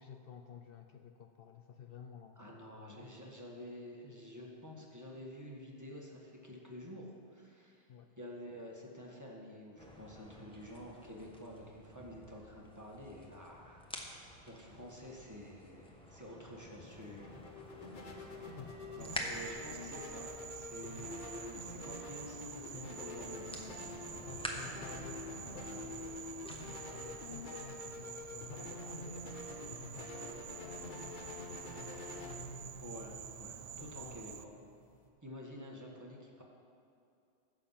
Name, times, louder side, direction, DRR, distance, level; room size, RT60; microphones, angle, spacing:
voice 1, 0.0-2.4 7.9-8.1 18.6-18.7 24.2-32.7 33.8-34.4, left 7 dB, 65° left, 6 dB, 0.7 m, -53 dB
voice 2, 2.4-7.9 8.2-17.4 17.9-18.5 19.0-20.3 20.5-24.3 32.8-34.5 35.2-36.4, left 1 dB, 15° right, -2 dB, 1.5 m, -50 dB
sound 1, 9.8-27.4, equal, 5° left, 1.1 m, -49 dB
sound 2, 16.8-35.1, left 2 dB, 45° left, 1.2 m, -47 dB
Insect, 19.0-34.4, right 8 dB, 60° right, 0.4 m, -48 dB
15.0 x 6.6 x 5.7 m, 2.5 s
omnidirectional pair, 1.2 m